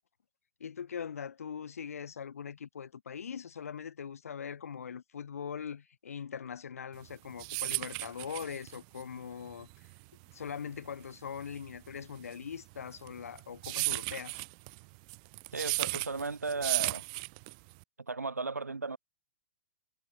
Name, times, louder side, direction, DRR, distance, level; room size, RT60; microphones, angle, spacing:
voice 1, 0.6-9.9 10.3-14.4, left 7 dB, 65° left, 4.5 m, -41 dB
sound 1, 7.0-17.8, right 34 dB, 30° right, 0.3 m, -35 dB
voice 2, 15.5-17.0 18.1-19.0, right 3 dB, 80° right, 2.4 m, -35 dB
figure-of-eight pair, 110°, 9 cm